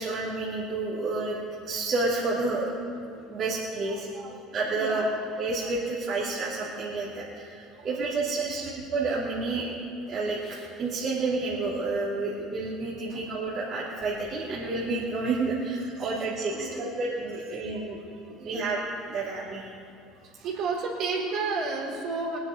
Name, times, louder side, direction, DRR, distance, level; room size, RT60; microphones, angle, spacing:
voice 1, 0.0-1.4 1.6-2.7 3.3-4.1 4.5-5.0 5.4-9.7 10.1-18.0 18.4-18.8 19.1-19.6, right 3 dB, 45° right, -8 dB, 3.0 m, -30 dB
voice 2, 3.9-4.4 4.7-5.1 7.7-8.6 13.1-13.2 13.6-13.8 15.8-16.1 16.5-16.9 18.3-18.7 20.2-22.4, right 4 dB, 65° right, -3 dB, 4.1 m, -34 dB
21.0 x 9.7 x 5.3 m, 2.5 s
hypercardioid pair, 70°, 0 cm